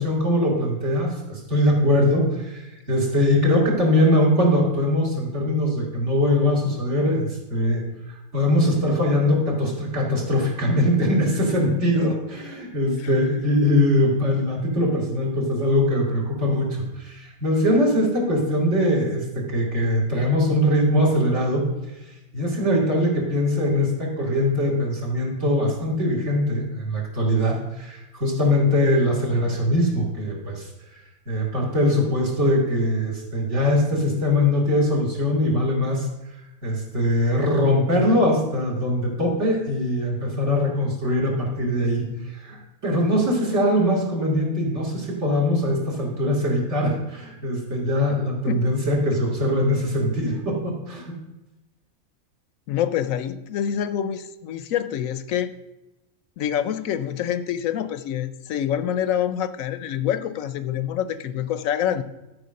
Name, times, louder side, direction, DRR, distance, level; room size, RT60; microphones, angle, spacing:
voice 1, 0.0-21.7 22.3-31.0 31.3-51.1, left 1 dB, 55° right, -3 dB, 2.9 m, -22 dB
voice 2, 48.5-48.8 52.7-55.5 56.4-62.0, left 10 dB, 75° left, 12 dB, 1.0 m, -26 dB
12.5 x 4.8 x 6.4 m, 1.0 s
omnidirectional pair, 1.5 m